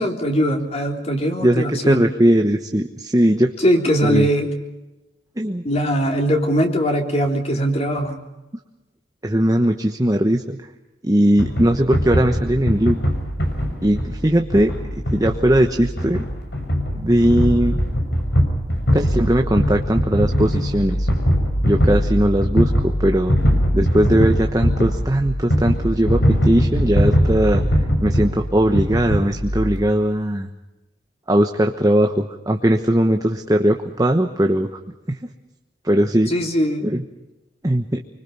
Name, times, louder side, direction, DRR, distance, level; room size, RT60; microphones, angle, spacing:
voice 1, 0.0-2.1 3.6-4.5 5.6-8.2 9.7-9.8 36.3-36.9, equal, 40° left, 2 dB, 3.6 m, -20 dB
voice 2, 1.4-3.5 4.0-4.3 5.4-5.6 9.2-10.6 11.0-13.0 13.8-14.7 15.1-16.2 16.9-17.8 18.9-21.1 21.6-23.3 23.7-27.6 28.0-30.5 31.3-34.7 35.8-36.3 36.8-37.0 37.6-38.0, right 1 dB, 20° right, 4 dB, 1.2 m, -19 dB
sound 1, 11.4-29.8, equal, 75° left, 5.9 m, -21 dB
26.0 x 25.0 x 5.5 m, 1.0 s
head